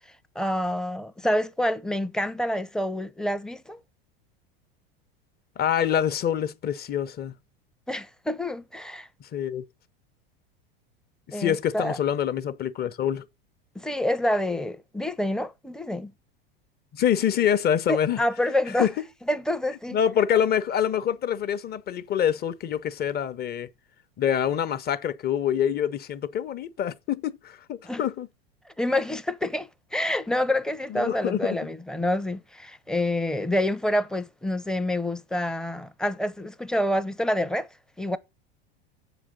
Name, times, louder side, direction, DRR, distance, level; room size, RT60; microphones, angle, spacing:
voice 1, 0.3-3.8 7.9-9.1 11.3-12.0 13.7-16.1 17.9-18.9 19.3-20.0 27.8-28.0 28.8-37.7 38.0-38.2, left 1 dB, ahead, 0.6 m, -27 dB
voice 2, 5.6-7.3 9.2-9.6 11.3-13.2 16.9-18.2 18.8-18.9 19.9-23.7 24.2-28.3 30.9-31.6, left 9 dB, 30° left, 0.8 m, -26 dB
7.3 x 5.0 x 6.6 m
hypercardioid pair, 100°, 30 cm